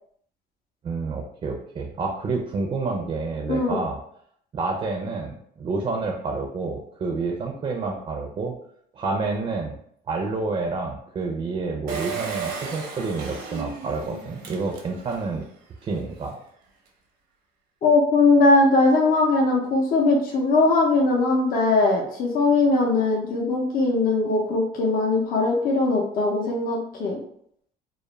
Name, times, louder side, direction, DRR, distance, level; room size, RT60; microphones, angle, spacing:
voice 1, 0.8-4.0 4.5-8.5 8.9-9.8 10.1-15.4 15.8-16.4, right 3 dB, 35° right, 2 dB, 0.4 m, -29 dB
voice 2, 3.5-3.8 17.8-27.2, left 3 dB, 55° left, -1 dB, 0.5 m, -20 dB
Engine, 11.9-15.3 15.8-15.9 16.1-16.2, right 5 dB, 75° right, 0.7 m, -34 dB
2.3 x 2.0 x 3.0 m, 0.68 s
cardioid pair, 110°, 17 cm